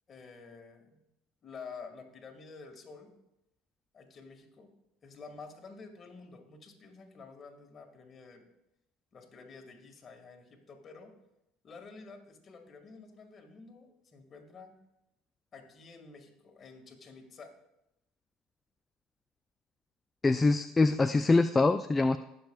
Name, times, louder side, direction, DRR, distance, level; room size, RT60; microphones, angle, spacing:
voice 1, 0.1-1.0 1.4-3.1 3.9-4.7 5.0-8.4 9.1-11.1 11.6-14.7 15.5-17.5, left 4 dB, 40° left, 4 dB, 2.0 m, -50 dB
voice 2, 20.2-22.2, left 3 dB, 20° left, 11 dB, 0.4 m, -24 dB
19.5 x 6.7 x 2.4 m, 0.88 s
hypercardioid pair, 70°, 0 cm